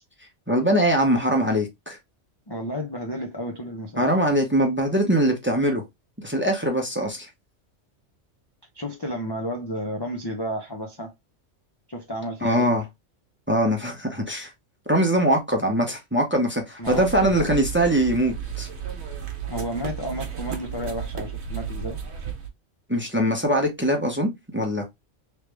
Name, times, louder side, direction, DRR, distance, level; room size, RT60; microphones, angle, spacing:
voice 1, 0.5-2.0 4.0-5.8 6.2-7.3 12.4-12.8 13.5-14.5 14.9-18.7 22.9-24.9, right 1 dB, 10° right, 0.7 m, -22 dB
voice 2, 2.5-4.1 8.7-11.1 11.9-12.7 16.8-17.5 19.5-22.0, equal, 25° left, 0.5 m, -32 dB
sound 1, 16.8-22.5, right 7 dB, 60° right, 1.1 m, -33 dB
3.3 x 3.2 x 3.3 m
omnidirectional pair, 1.3 m